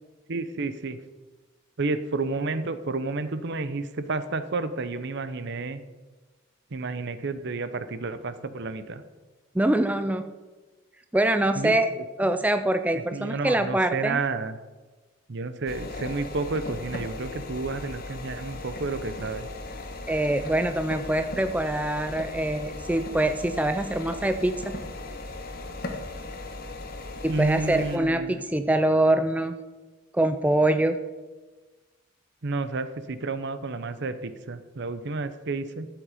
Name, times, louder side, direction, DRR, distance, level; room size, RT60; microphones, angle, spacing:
voice 1, 0.3-1.0 1.8-5.8 6.7-9.0 11.6-12.0 12.9-14.5 15.3-19.5 27.3-28.4 32.4-35.9, right 3 dB, 55° right, 12 dB, 0.7 m, -31 dB
voice 2, 9.5-10.2 11.1-11.9 12.2-14.2 20.1-24.8 27.2-29.5 30.1-31.0, right 1 dB, 5° right, 9 dB, 0.4 m, -24 dB
sound 1, 15.7-28.0, left 2 dB, 45° left, 1.4 m, -37 dB
12.5 x 7.7 x 5.0 m, 1.3 s
head